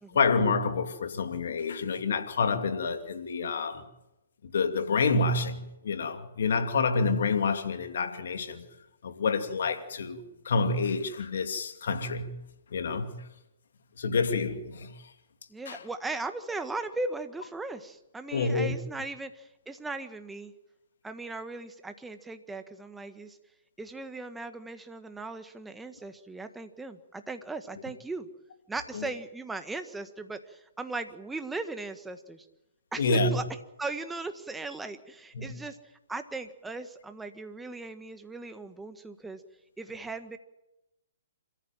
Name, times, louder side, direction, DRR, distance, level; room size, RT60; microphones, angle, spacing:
voice 1, 0.1-3.8 4.5-8.6 9.0-12.4 12.7-13.2 14.0-14.9 15.7-15.8 18.3-18.7 28.9-29.0 33.0-33.4 35.3-35.5, left 4 dB, 65° left, 2.6 m, -28 dB
voice 2, 15.5-20.5 21.0-23.4 23.8-28.3 28.7-32.4 32.9-33.4 33.8-35.8 36.1-39.4 39.8-40.4, right 3 dB, 5° right, 1.6 m, -38 dB
26.5 x 14.5 x 9.0 m
figure-of-eight pair, 130°, 0 cm